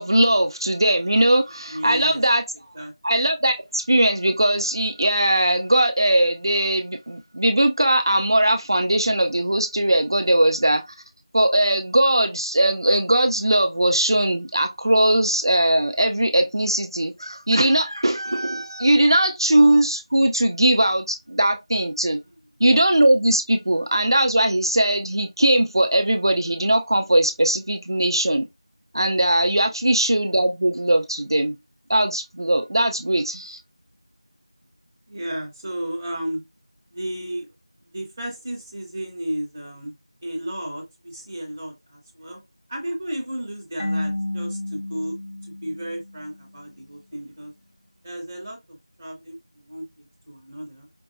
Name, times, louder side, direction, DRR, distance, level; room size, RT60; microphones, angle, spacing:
voice 1, 0.0-2.4 3.0-10.8 11.3-22.2 22.6-28.4 28.9-31.5 31.9-33.6, right 1 dB, 50° right, 0.4 m, -20 dB
voice 2, 1.7-2.2 2.7-2.9 35.1-36.4 36.9-37.5 37.9-39.9 40.2-42.4 42.7-45.1 45.4-47.5 48.0-50.9, right 1 dB, 10° right, 0.6 m, -33 dB
Marimba xylophone / Wood, 43.8-46.5, left 1 dB, 80° left, 0.9 m, -31 dB
5.1 x 2.0 x 2.5 m
figure-of-eight pair, 175°, 3 cm